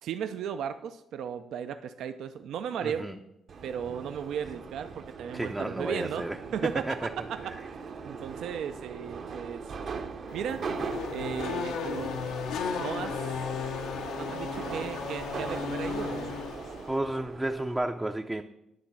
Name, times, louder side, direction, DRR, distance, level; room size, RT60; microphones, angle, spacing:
voice 1, 0.0-3.1 3.6-6.3 6.5-7.8 8.0-9.6 10.3-10.6 11.1-12.1 12.7-13.3 14.1-16.4, right 8 dB, 75° right, 0.4 m, -35 dB
voice 2, 2.8-3.2 5.3-6.4 6.9-7.1 7.4-7.6 16.9-18.4, right 1 dB, 10° right, 0.4 m, -32 dB
Subway metro underground, 3.5-17.8, right 5 dB, 55° right, 0.8 m, -40 dB
Race car auto racing / Accelerating revving vroom, 10.3-17.0, left 7 dB, 85° left, 0.7 m, -35 dB
9.6 x 3.9 x 7.2 m
cardioid pair, 90°, 0 cm